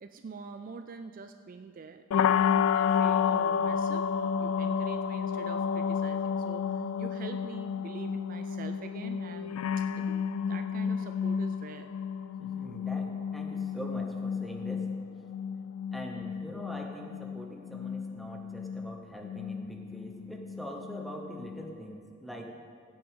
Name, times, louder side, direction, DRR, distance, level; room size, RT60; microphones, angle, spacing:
voice 1, 0.0-4.1 4.4-11.9, right 4 dB, 40° right, 8 dB, 0.3 m, -45 dB
sound 1, 2.1-21.9, left 7 dB, 85° left, 0.3 m, -31 dB
voice 2, 12.4-14.8 15.9-22.5, equal, ahead, 1 dB, 0.9 m, -43 dB
15.0 x 8.6 x 3.7 m, 2.4 s
head